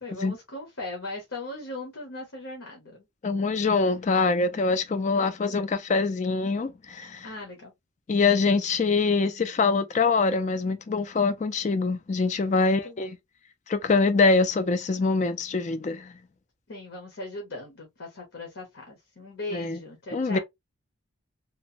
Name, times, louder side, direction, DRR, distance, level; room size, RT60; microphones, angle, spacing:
voice 1, 0.0-3.0 5.1-5.6 7.2-7.7 9.1-9.5 12.6-13.1 16.7-20.4, left 2 dB, 70° left, 0.8 m, -39 dB
voice 2, 3.2-7.3 8.1-13.2 13.7-16.1 19.5-19.8 20.1-20.4, left 4 dB, 35° left, 0.3 m, -24 dB
2.9 x 2.1 x 2.6 m
head